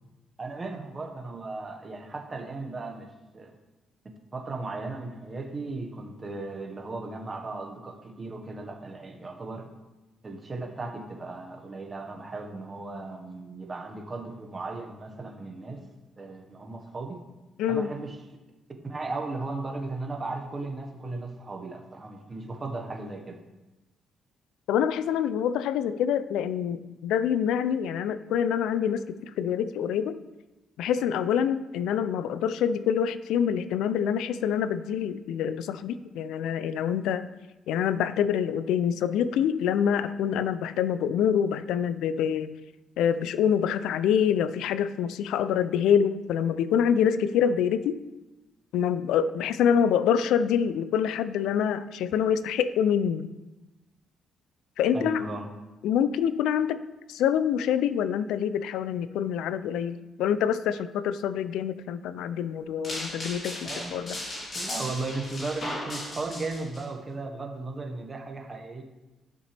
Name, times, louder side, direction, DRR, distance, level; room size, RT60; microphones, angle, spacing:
voice 1, 0.4-3.1 3.3-3.5 4.3-9.7 10.2-15.8 16.2-17.2 17.7-18.2 18.8-23.4 54.9-55.5 63.6-64.2 64.5-68.8, right 3 dB, 30° right, 3 dB, 1.4 m, -36 dB
voice 2, 17.6-17.9 24.7-30.2 30.8-37.3 37.7-42.6 43.0-48.0 48.7-53.3 54.8-55.2 55.8-64.2, left 8 dB, 90° left, 14 dB, 0.4 m, -26 dB
sound 1, 62.8-66.8, left 1 dB, 45° left, 3.1 m, -36 dB
11.5 x 6.7 x 3.4 m, 1.1 s
cardioid pair, 90°, 0 cm